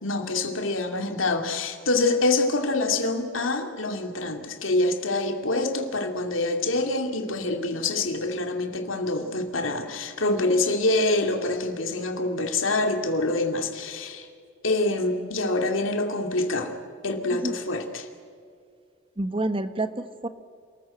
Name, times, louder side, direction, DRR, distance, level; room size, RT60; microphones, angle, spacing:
voice 1, 0.0-14.3 14.6-16.7 17.0-18.1, left 2 dB, 75° left, 5 dB, 2.6 m, -26 dB
voice 2, 19.2-20.3, right 2 dB, 25° right, 10 dB, 1.2 m, -28 dB
28.0 x 14.5 x 9.0 m, 2.2 s
head